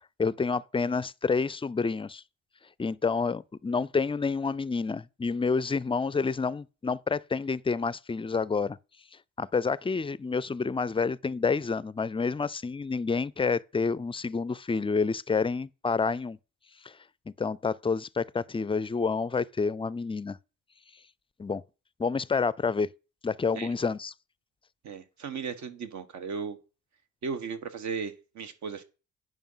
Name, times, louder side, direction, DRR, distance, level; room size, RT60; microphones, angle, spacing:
voice 1, 0.2-2.2 2.8-8.8 9.4-16.4 16.8-16.9 17.3-20.4 21.4-21.6 22.0-22.9 23.2-24.1, left 4 dB, 20° left, 0.4 m, -28 dB
voice 2, 24.8-26.6 27.2-28.8, right 5 dB, 65° right, 1.4 m, -36 dB
9.2 x 5.4 x 5.6 m
cardioid pair, 90°, 30 cm